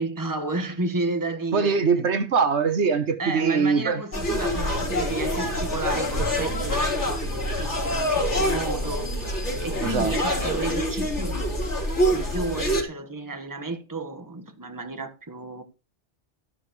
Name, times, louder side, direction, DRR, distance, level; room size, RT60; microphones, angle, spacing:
voice 1, 0.0-2.1 3.2-9.1 9.6-11.4 12.1-15.6, right 3 dB, 15° right, 1.6 m, -32 dB
voice 2, 1.5-4.0 9.8-10.2, right 5 dB, 75° right, 1.4 m, -22 dB
sound 1, 4.1-12.8, equal, 80° left, 4.2 m, -26 dB
14.0 x 10.5 x 3.2 m
omnidirectional pair, 1.2 m